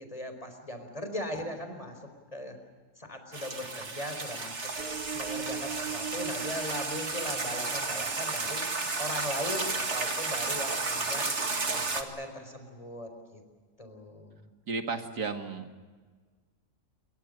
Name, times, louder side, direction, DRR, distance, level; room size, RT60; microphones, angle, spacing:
voice 1, 0.0-2.0 2.3-2.6 3.0-4.7 5.1-8.6 9.0-11.3 11.7-13.4 13.8-14.4, left 1 dB, 20° left, 6 dB, 4.5 m, -38 dB
sound 1, 3.3-12.0, right 3 dB, 45° right, 2.3 m, -33 dB
sound 2, 4.8-8.4, right 7 dB, 70° right, 2.9 m, -40 dB
voice 2, 14.7-15.9, right 4 dB, 85° right, 5 dB, 2.7 m, -34 dB
29.0 x 23.5 x 6.6 m, 1.5 s
omnidirectional pair, 1.7 m